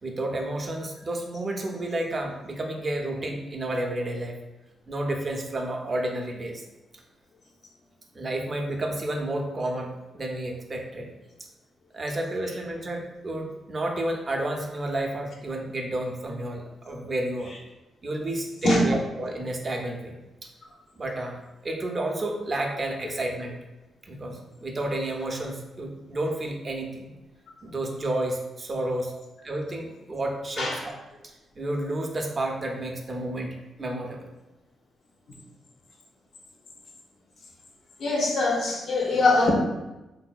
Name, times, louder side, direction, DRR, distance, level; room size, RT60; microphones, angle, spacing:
voice 1, 0.0-4.3 4.9-6.6 8.1-11.1 11.9-17.5 18.0-20.1 21.0-23.6 24.0-27.1 27.6-29.1 29.4-30.9 31.2-34.3, right 1 dB, 40° right, 2 dB, 0.5 m, -31 dB
voice 2, 38.0-39.5, left 2 dB, 70° left, -1 dB, 0.7 m, -22 dB
3.5 x 2.7 x 2.3 m, 1.0 s
cardioid pair, 85°, 0 cm